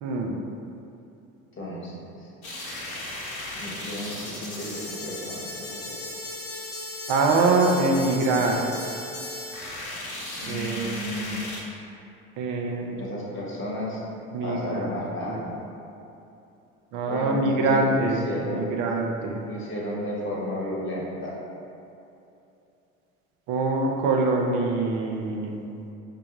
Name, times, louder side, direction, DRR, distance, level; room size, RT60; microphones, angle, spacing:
voice 1, 0.0-0.4 7.1-8.7 10.4-10.9 12.4-12.9 14.3-14.9 15.3-15.5 16.9-19.4 23.5-25.6, right 3 dB, 50° right, 1 dB, 0.6 m, -24 dB
voice 2, 1.6-2.3 3.5-6.0 10.4-11.4 12.9-14.0 14.4-15.4 17.1-18.7 19.4-21.3, left 1 dB, 30° left, -4 dB, 1.1 m, -33 dB
sound 1, 2.4-11.6, left 2 dB, 80° left, 0.9 m, -36 dB
5.1 x 2.2 x 3.0 m, 2.7 s
hypercardioid pair, 70°, 42 cm